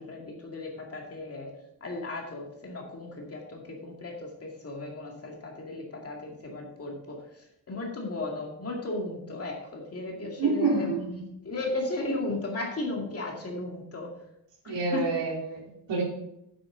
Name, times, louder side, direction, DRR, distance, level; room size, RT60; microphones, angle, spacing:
voice 1, 0.0-1.5 1.8-14.1 14.6-15.1, left 2 dB, 35° left, 0 dB, 2.2 m, -35 dB
voice 2, 10.4-11.0 14.7-15.6 15.9-16.0, right 3 dB, 75° right, -2 dB, 3.6 m, -27 dB
9.6 x 8.4 x 3.9 m, 0.81 s
wide cardioid pair, 165°, 43 cm